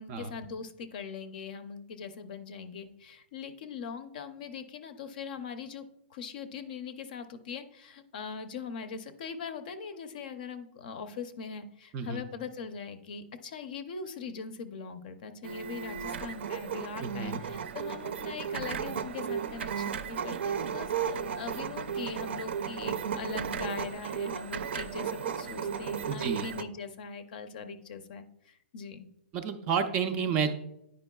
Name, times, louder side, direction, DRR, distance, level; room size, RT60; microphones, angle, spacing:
voice 1, 0.0-29.1, left 5 dB, 45° left, 10 dB, 0.6 m, -41 dB
sound 1, 15.4-26.6, right 7 dB, 70° right, 0.5 m, -35 dB
voice 2, 17.0-17.4 26.1-26.5 29.3-30.5, right 6 dB, 20° right, 7 dB, 0.4 m, -30 dB
9.9 x 5.2 x 2.3 m, 0.78 s
hypercardioid pair, 170°, 6 cm